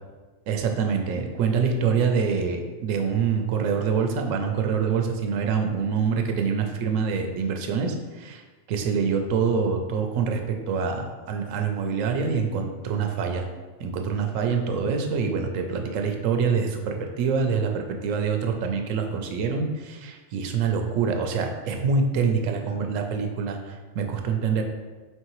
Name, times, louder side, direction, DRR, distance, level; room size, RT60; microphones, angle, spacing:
voice 1, 0.5-8.4 8.7-13.5 13.8-24.6, right 5 dB, 90° right, 4 dB, 1.0 m, -25 dB
4.6 x 3.1 x 3.0 m, 1.3 s
omnidirectional pair, 1.3 m